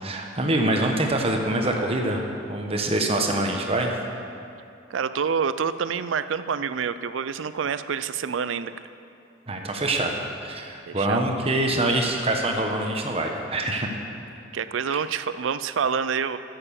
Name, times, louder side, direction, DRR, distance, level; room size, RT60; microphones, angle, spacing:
voice 1, 0.0-3.9 9.5-10.1 10.4-13.9 14.9-15.0, right 1 dB, 30° right, 2 dB, 1.2 m, -25 dB
voice 2, 4.9-8.7 10.9-11.2 14.5-16.4, right 6 dB, 85° right, 13 dB, 0.5 m, -27 dB
11.0 x 7.8 x 7.1 m, 2.6 s
head